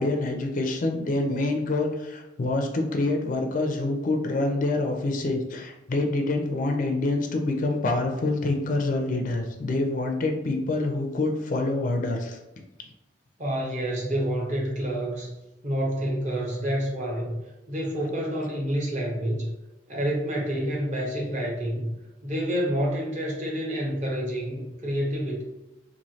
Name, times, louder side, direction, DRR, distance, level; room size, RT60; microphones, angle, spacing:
voice 1, 0.0-12.4, left 2 dB, 45° left, 3 dB, 0.4 m, -26 dB
voice 2, 13.4-15.3 15.6-17.4 17.7-19.5 19.9-21.9 22.2-25.4, equal, 40° right, -2 dB, 0.7 m, -28 dB
3.0 x 2.6 x 2.7 m, 1.0 s
head